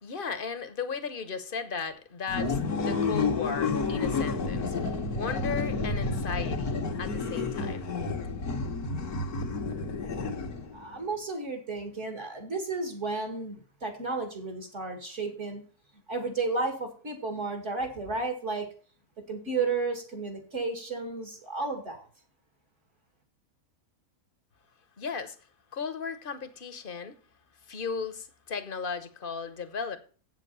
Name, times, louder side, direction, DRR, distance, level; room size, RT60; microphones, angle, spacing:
voice 1, 0.0-7.9 8.2-8.4 25.0-25.4 25.7-27.2 27.7-30.0, left 5 dB, 40° left, 1.1 m, -36 dB
sound 1, 2.3-10.8, left 4 dB, 85° left, 2.0 m, -30 dB
voice 2, 10.7-15.6 16.1-18.7 19.3-22.1, right 3 dB, 55° right, 2.5 m, -33 dB
8.2 x 7.4 x 6.8 m
omnidirectional pair, 1.5 m